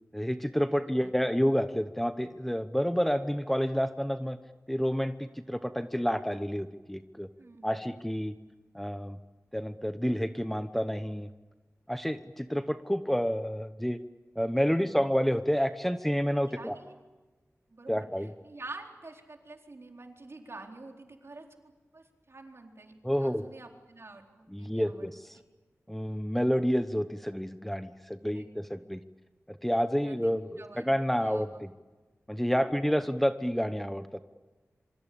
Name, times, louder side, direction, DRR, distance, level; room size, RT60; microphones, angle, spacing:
voice 1, 0.1-4.4 4.7-7.3 7.6-8.3 8.7-9.2 9.5-11.3 11.9-14.0 14.4-16.7 17.9-18.3 23.0-23.4 24.5-25.4 25.9-29.0 29.5-31.7 32.3-34.2, equal, 5° left, 10 dB, 1.0 m, -29 dB
voice 2, 0.8-1.2 7.4-7.9 14.8-15.1 16.5-17.1 17.7-25.1 28.3-28.5 28.7-28.8 30.0-31.7 32.5-33.0, right 2 dB, 55° right, 3 dB, 4.2 m, -48 dB
26.5 x 24.5 x 8.7 m, 1.2 s
wide cardioid pair, 80°, 5 cm